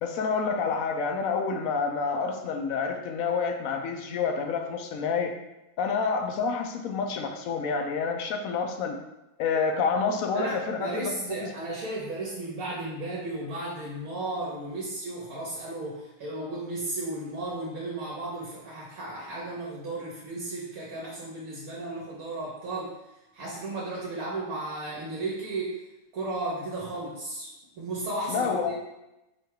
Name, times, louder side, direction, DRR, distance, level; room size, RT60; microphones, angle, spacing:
voice 1, 0.0-5.4 5.8-9.0 9.4-11.5 28.3-28.7, left 5 dB, 75° left, 5 dB, 1.0 m, -28 dB
voice 2, 10.3-22.9 23.3-25.8 26.1-27.5 27.8-28.7, right 2 dB, 75° right, -5 dB, 1.3 m, -34 dB
4.6 x 2.3 x 4.7 m, 0.95 s
omnidirectional pair, 1.5 m